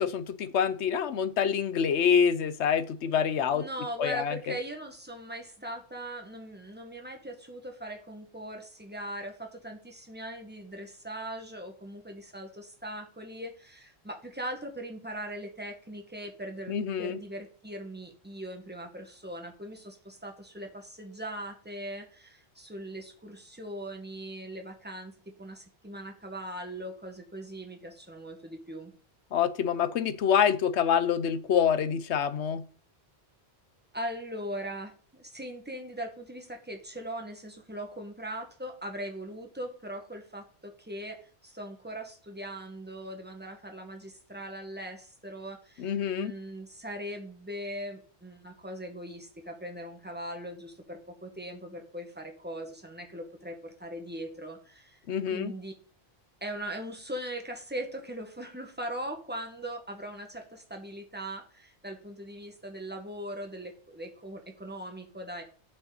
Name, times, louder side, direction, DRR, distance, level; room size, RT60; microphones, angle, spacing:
voice 1, 0.0-3.6 4.0-4.3 16.7-17.2 29.3-32.6 45.8-46.3 55.1-55.5, left 7 dB, 80° left, 14 dB, 1.0 m, -26 dB
voice 2, 3.5-28.9 33.9-55.0 55.3-55.7 56.4-65.4, right 1 dB, 10° right, 3 dB, 1.6 m, -40 dB
9.8 x 7.2 x 4.0 m, 0.42 s
omnidirectional pair, 1.1 m